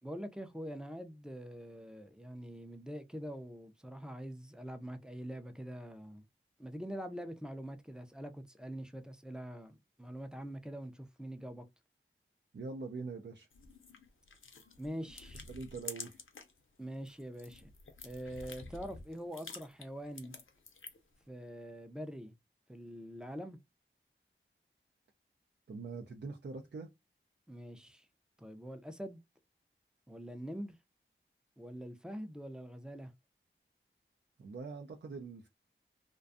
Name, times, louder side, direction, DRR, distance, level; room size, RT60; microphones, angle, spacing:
voice 1, 0.0-6.2 6.6-11.6 14.8-15.4 16.8-17.7 18.0-20.3 21.3-22.3 22.7-23.6 27.5-28.1 28.4-29.2 30.1-30.8 31.6-33.1, equal, 5° right, 0.4 m, -44 dB
voice 2, 12.5-13.5 15.3-16.2 25.7-26.9 34.4-35.5, right 4 dB, 60° right, 0.4 m, -43 dB
sound 1, 13.5-16.6 16.9-21.1, left 4 dB, 75° left, 0.5 m, -50 dB
2.5 x 2.2 x 2.5 m
wide cardioid pair, 50°, 21 cm